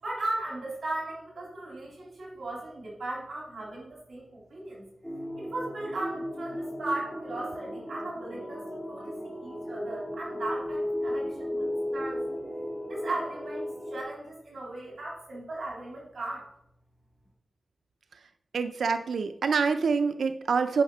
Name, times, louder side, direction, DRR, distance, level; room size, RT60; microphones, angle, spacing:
voice 1, 0.0-4.8 5.4-12.2 12.9-16.5, right 2 dB, 70° right, -3 dB, 3.5 m, -37 dB
sound 1, 5.0-14.0, left 1 dB, 5° right, 2.9 m, -35 dB
voice 2, 18.5-20.8, right 5 dB, 90° right, 9 dB, 0.4 m, -26 dB
10.0 x 5.5 x 5.6 m, 0.76 s
wide cardioid pair, 135°, 0 cm